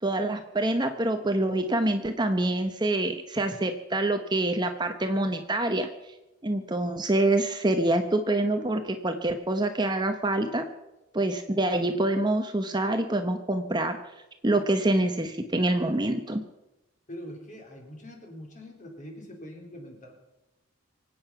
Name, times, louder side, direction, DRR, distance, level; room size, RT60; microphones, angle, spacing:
voice 1, 0.0-5.9 6.4-10.7 11.1-14.0 14.4-16.4, right 1 dB, 20° right, 6 dB, 0.8 m, -26 dB
voice 2, 17.1-20.2, equal, 35° left, 1 dB, 3.7 m, -43 dB
24.5 x 8.8 x 5.8 m, 0.97 s
head